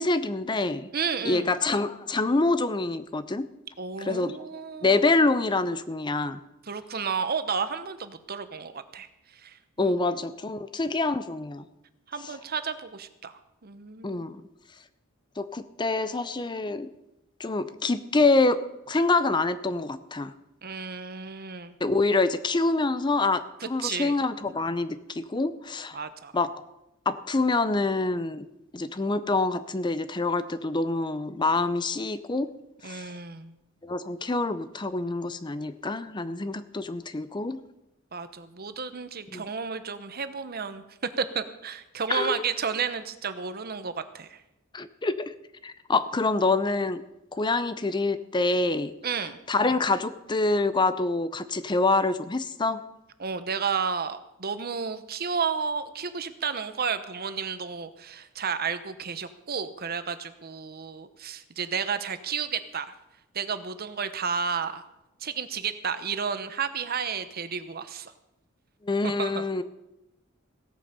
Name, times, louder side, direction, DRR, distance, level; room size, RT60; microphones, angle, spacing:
voice 1, 0.0-0.9 1.2-3.5 4.0-4.4 4.8-6.4 9.8-11.6 14.0-14.4 15.4-16.9 17.4-18.6 18.9-20.3 21.8-26.0 26.3-26.5 27.1-28.5 28.7-32.5 32.8-33.1 33.8-37.6 39.3-39.4 42.1-42.4 44.7-45.3 45.6-47.0 47.3-48.9 49.5-52.8 68.8-69.6, left 3 dB, 20° left, 13 dB, 0.5 m, -26 dB
voice 2, 0.9-1.5 3.8-5.0 6.7-9.1 9.4-10.0 12.1-13.3 13.6-14.3 20.6-21.7 23.6-24.2 25.9-26.3 32.8-33.5 38.1-40.8 41.2-44.4 49.0-49.4 53.2-62.9 63.3-64.8 65.2-68.1 69.0-69.6, right 6 dB, 50° right, 11 dB, 1.0 m, -32 dB
16.5 x 9.0 x 6.7 m, 0.89 s
head